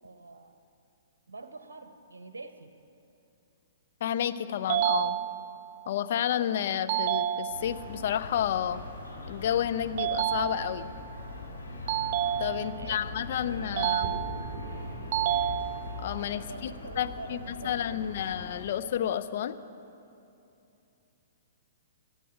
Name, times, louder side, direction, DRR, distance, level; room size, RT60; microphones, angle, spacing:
voice 1, 0.0-0.6 1.3-2.7 12.6-14.5 16.5-18.2, right 3 dB, 65° right, 9 dB, 0.8 m, -46 dB
voice 2, 4.0-5.2 5.9-8.8 9.3-10.9 12.4-14.2 16.0-19.6, left 10 dB, 50° left, 10 dB, 0.5 m, -31 dB
sound 1, 4.7-5.7 6.9-7.9 10.0-11.0 11.9-12.9 13.8-14.7 15.1-16.1, right 11 dB, 45° right, 0.3 m, -30 dB
sound 2, 7.5-18.6, left 3 dB, 80° left, 3.2 m, -42 dB
sound 3, 14.0-17.7, right 4 dB, 20° right, 3.8 m, -43 dB
22.5 x 7.7 x 5.0 m, 2.8 s
figure-of-eight pair, 115°, 0 cm